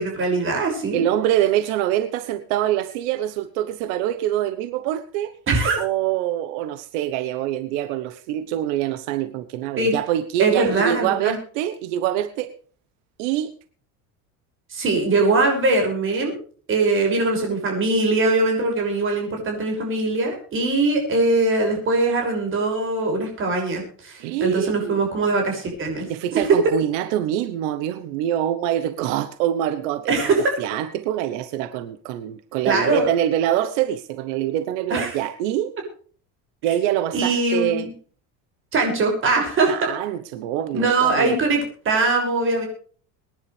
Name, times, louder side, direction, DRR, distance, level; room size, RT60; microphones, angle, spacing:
voice 1, 0.0-1.0 5.5-5.8 9.8-9.9 10.4-11.4 14.7-16.4 16.7-26.1 26.3-26.4 30.1-30.5 32.6-33.1 34.9-35.1 37.1-37.8 38.7-39.9 40.7-42.6, right 3 dB, 35° right, 6.2 m, -21 dB
voice 2, 0.9-5.3 5.8-12.5 13.2-13.5 24.2-25.0 26.1-30.3 30.6-35.7 36.6-37.9 39.7-41.3, right 12 dB, 90° right, 1.1 m, -25 dB
23.5 x 10.5 x 3.3 m
cardioid pair, 150°, 36 cm